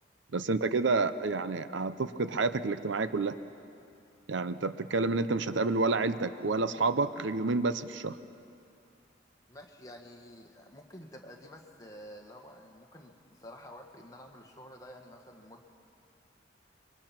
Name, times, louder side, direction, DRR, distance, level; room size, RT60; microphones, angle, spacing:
voice 1, 0.3-3.4 4.3-8.2, right 3 dB, 75° right, 13 dB, 0.7 m, -29 dB
voice 2, 9.5-15.7, equal, 20° left, 1 dB, 1.7 m, -50 dB
26.0 x 23.0 x 6.0 m, 2.6 s
head